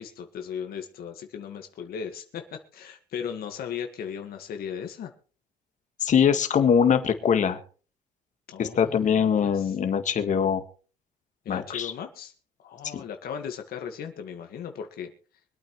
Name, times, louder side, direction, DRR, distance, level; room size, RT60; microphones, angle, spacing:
voice 1, 0.0-5.1 8.5-9.7 11.5-12.3 12.6-15.1, left 7 dB, 65° left, 5 dB, 1.8 m, -37 dB
voice 2, 6.0-7.6 8.6-10.6 11.5-11.9 12.9-13.0, left 7 dB, 45° left, 8 dB, 1.8 m, -22 dB
24.5 x 9.0 x 3.2 m, 0.39 s
cardioid pair, 110°, 17 cm